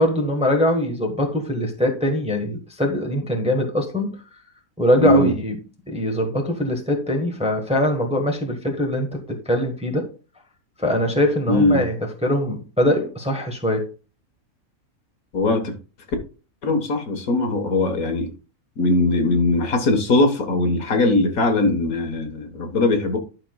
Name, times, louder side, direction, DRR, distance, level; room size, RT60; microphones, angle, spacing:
voice 1, 0.0-4.2 4.8-5.6 5.9-10.0 10.8-12.0 12.2-13.9, left 1 dB, 5° right, 1.1 m, -22 dB
voice 2, 5.0-5.3 11.5-11.9 15.3-15.8 16.6-18.3 18.8-23.2, left 2 dB, 70° left, 1.7 m, -20 dB
11.5 x 5.7 x 2.3 m
omnidirectional pair, 1.6 m